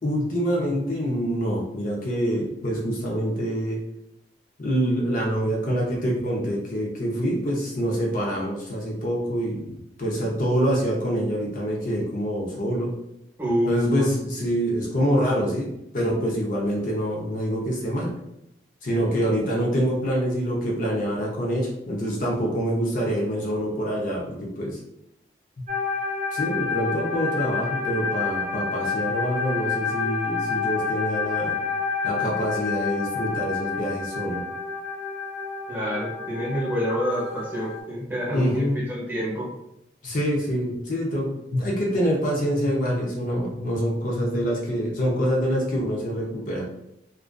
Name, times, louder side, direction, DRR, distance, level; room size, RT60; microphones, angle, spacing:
voice 1, 0.0-3.8 4.6-12.9 13.7-15.7 15.9-18.1 18.8-24.8 25.6-25.7 26.3-31.5 32.0-34.4 38.3-38.8 40.0-46.7, equal, 50° left, -3 dB, 0.6 m, -26 dB
voice 2, 13.4-14.1 35.7-39.5, equal, 10° right, -5 dB, 0.8 m, -27 dB
sound 1, 25.7-37.8, left 5 dB, 40° right, 0.4 m, -29 dB
2.4 x 2.3 x 2.2 m, 0.83 s
head